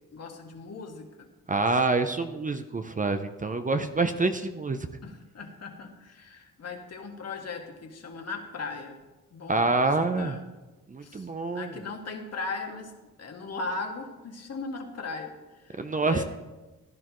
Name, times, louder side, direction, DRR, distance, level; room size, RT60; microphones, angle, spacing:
voice 1, 0.1-1.3 5.0-9.0 9.3-10.4 11.0-11.3 11.5-16.2, left 3 dB, 50° left, 3 dB, 1.8 m, -38 dB
voice 2, 1.5-4.9 9.5-10.4 10.9-11.7 15.8-16.2, right 3 dB, 25° right, 8 dB, 0.7 m, -26 dB
15.5 x 11.0 x 3.1 m, 1.1 s
cardioid pair, 95°, 33 cm